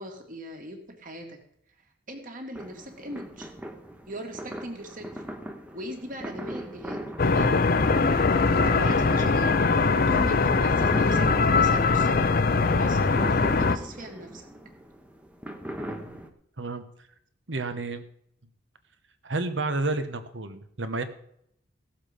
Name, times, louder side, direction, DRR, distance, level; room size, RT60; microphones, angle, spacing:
voice 1, 0.0-1.4 2.1-3.5 4.1-5.2 5.7-12.3 12.6-14.5, equal, 45° right, 3 dB, 2.2 m, -39 dB
sound 1, 2.6-16.3, right 1 dB, 5° right, 0.9 m, -39 dB
sound 2, 7.2-13.8, left 4 dB, 50° left, 0.6 m, -22 dB
voice 2, 15.9-16.2 16.6-16.8 17.5-18.0 19.2-21.0, right 3 dB, 75° right, 9 dB, 1.2 m, -30 dB
16.5 x 7.3 x 5.2 m, 0.72 s
head